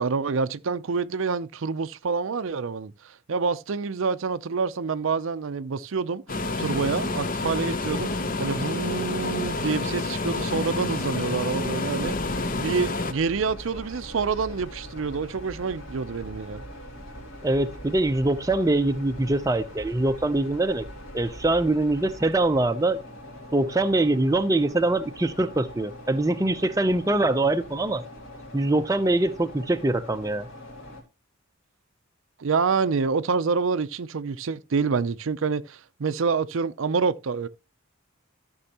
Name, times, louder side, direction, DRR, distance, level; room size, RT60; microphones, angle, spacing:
voice 1, 0.0-12.2 12.5-16.6 32.4-37.5, right 5 dB, 65° right, 0.5 m, -27 dB
sound 1, 6.3-13.1, left 2 dB, 40° left, 0.7 m, -28 dB
voice 2, 11.3-11.7 17.4-20.8 21.1-23.0 23.5-28.0 28.5-30.5, right 2 dB, 15° right, 0.5 m, -23 dB
sound 2, 12.0-31.0, equal, 60° left, 2.9 m, -42 dB
13.0 x 6.2 x 2.9 m
head